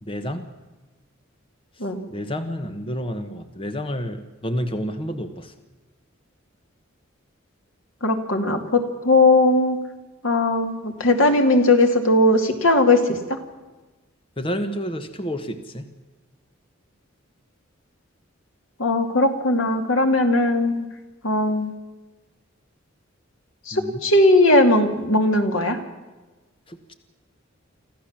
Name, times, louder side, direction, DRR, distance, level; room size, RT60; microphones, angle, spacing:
voice 1, 0.0-0.5 1.7-5.5 14.4-15.9 23.7-24.0 26.7-26.9, equal, 25° left, 8 dB, 1.2 m, -30 dB
voice 2, 8.0-9.8 10.2-13.4 18.8-20.9 21.2-21.7 23.7-25.8, left 2 dB, 80° left, 6 dB, 2.5 m, -18 dB
25.5 x 15.0 x 7.4 m, 1.2 s
head